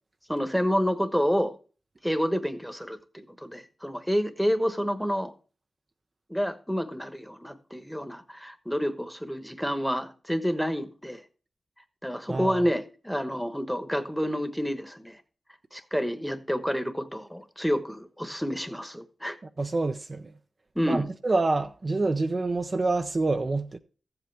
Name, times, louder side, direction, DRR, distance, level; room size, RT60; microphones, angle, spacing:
voice 1, 0.3-1.5 2.0-5.3 6.3-11.2 12.0-15.2 15.7-19.4 20.7-21.1, equal, ahead, 1.2 m, -29 dB
voice 2, 12.3-12.7 19.6-20.4 20.9-23.8, right 3 dB, 45° right, 0.6 m, -27 dB
14.0 x 7.9 x 3.4 m
cardioid pair, 55°, 0 cm